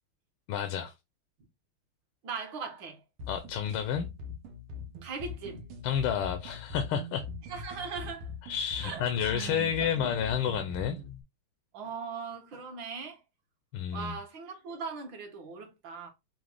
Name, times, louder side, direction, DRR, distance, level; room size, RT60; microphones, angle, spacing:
voice 1, 0.5-0.9 3.3-4.1 5.8-7.2 8.4-11.0 13.7-14.1, left 8 dB, 80° left, 1.5 m, -30 dB
voice 2, 2.2-3.0 5.0-5.7 7.5-8.3 8.8-10.4 11.7-13.2 13.9-16.1, right 5 dB, 65° right, 1.7 m, -40 dB
sound 1, 3.2-11.2, left 3 dB, 90° right, 1.7 m, -42 dB
6.2 x 2.2 x 3.4 m
omnidirectional pair, 2.3 m